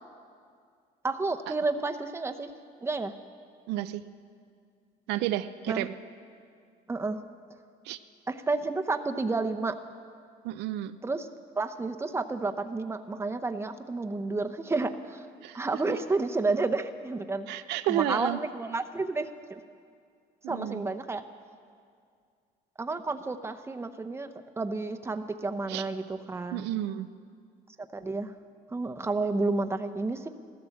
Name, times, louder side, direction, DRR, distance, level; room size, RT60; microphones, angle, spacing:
voice 1, 1.0-2.5 2.8-3.1 5.7-5.9 6.9-7.2 8.3-9.8 11.0-11.3 11.6-15.3 15.5-17.5 17.9-19.6 20.5-21.2 22.8-24.3 24.6-26.7 27.9-28.3 28.7-30.3, right 3 dB, 15° right, 9 dB, 0.8 m, -30 dB
voice 2, 3.7-4.0 5.1-5.9 7.9-8.0 10.4-11.0 15.4-15.6 17.5-18.4 20.4-20.8 25.7-25.8 26.5-27.1, right 13 dB, 90° right, 11 dB, 0.6 m, -31 dB
15.0 x 13.0 x 7.1 m, 2.2 s
cardioid pair, 110°, 17 cm